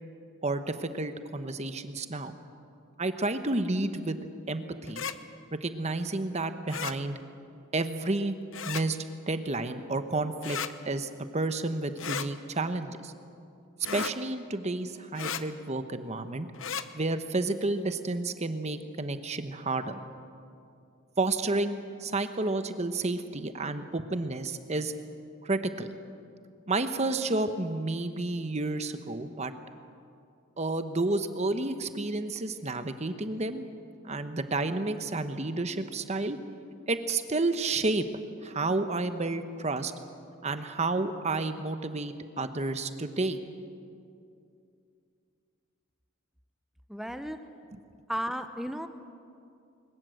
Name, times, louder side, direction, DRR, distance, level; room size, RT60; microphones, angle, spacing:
voice 1, 0.4-2.4 3.0-4.2 4.5-5.0 5.5-7.2 7.7-8.4 8.7-9.0 9.3-10.6 10.8-13.1 13.9-16.5 16.9-20.0 21.2-24.9 25.4-25.9 26.7-29.5 30.6-33.6 34.0-36.4 36.9-38.1 38.4-39.9 40.4-43.4 47.7-47.8, right 2 dB, 30° right, 9 dB, 1.0 m, -31 dB
sound 1, 4.9-5.2 6.7-7.0 8.5-8.8 10.4-10.7 12.0-12.3 13.8-14.1 15.2-15.4 16.5-16.9, left 7 dB, 65° left, 0.8 m, -34 dB
voice 2, 46.9-47.4 48.1-48.9, equal, ahead, 8 dB, 0.7 m, -34 dB
22.0 x 20.5 x 7.7 m, 2.5 s
head